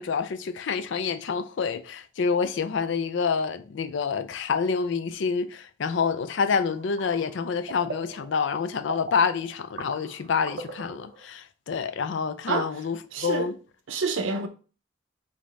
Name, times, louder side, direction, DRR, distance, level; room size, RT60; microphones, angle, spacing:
voice 1, 0.0-13.6, left 5 dB, 70° left, 0.4 m, -27 dB
sound 1, 6.2-11.3, right 3 dB, 65° right, 0.9 m, -42 dB
voice 2, 13.1-13.5 13.9-14.5, right 4 dB, 90° right, 0.6 m, -27 dB
5.1 x 2.7 x 3.4 m
head